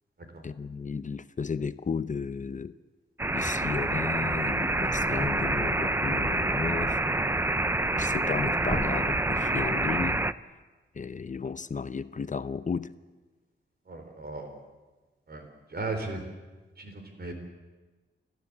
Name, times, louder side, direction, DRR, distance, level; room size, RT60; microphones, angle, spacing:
voice 1, 0.4-2.7 3.3-7.0 8.0-10.2 10.9-12.9, left 5 dB, 40° left, 13 dB, 0.6 m, -33 dB
sound 1, 3.2-10.3, right 2 dB, 10° right, 0.6 m, -27 dB
voice 2, 13.9-14.6 15.3-15.4 15.7-16.2 16.8-17.3, right 3 dB, 55° right, 5 dB, 4.1 m, -36 dB
30.0 x 13.0 x 8.6 m, 1.3 s
wide cardioid pair, 125°, 20 cm